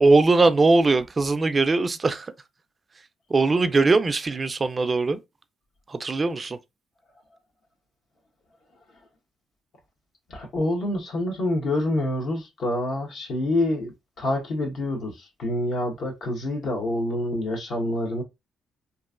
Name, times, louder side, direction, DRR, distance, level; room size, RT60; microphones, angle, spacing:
voice 1, 0.0-2.3 3.3-5.2 5.9-6.6, right 3 dB, 30° right, 0.4 m, -20 dB
voice 2, 10.3-18.2, left 1 dB, 65° left, 1.2 m, -27 dB
3.0 x 2.5 x 2.4 m
cardioid pair, 90°, 0 cm